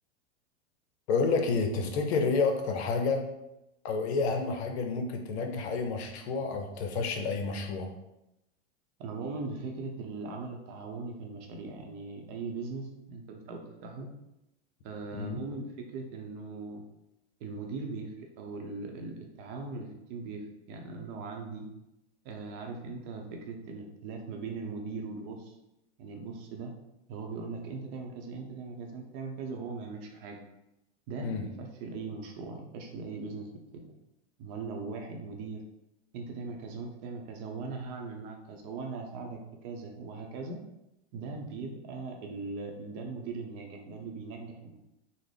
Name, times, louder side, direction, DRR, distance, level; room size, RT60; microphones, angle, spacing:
voice 1, 1.1-3.3 3.8-7.9 15.1-15.4 31.2-31.5, left 4 dB, 65° left, 4 dB, 0.7 m, -29 dB
voice 2, 9.0-14.1 14.8-15.7 15.9-16.8 17.4-21.7 22.2-25.6 26.0-26.7 27.1-30.4 31.1-33.5 34.4-35.6 36.1-40.6 41.1-44.8, right 4 dB, 45° right, 2 dB, 0.7 m, -39 dB
3.7 x 2.1 x 3.3 m, 0.91 s
hypercardioid pair, 115°, 35 cm